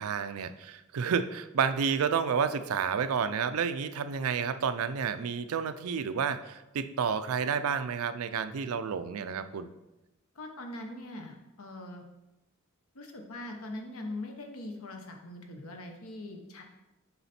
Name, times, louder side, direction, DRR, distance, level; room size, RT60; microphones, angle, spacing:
voice 1, 0.0-9.7, right 6 dB, 85° right, 12 dB, 0.4 m, -30 dB
voice 2, 10.3-12.0 12.9-16.6, left 1 dB, 80° left, 3 dB, 1.0 m, -42 dB
6.9 x 4.1 x 4.2 m, 0.98 s
head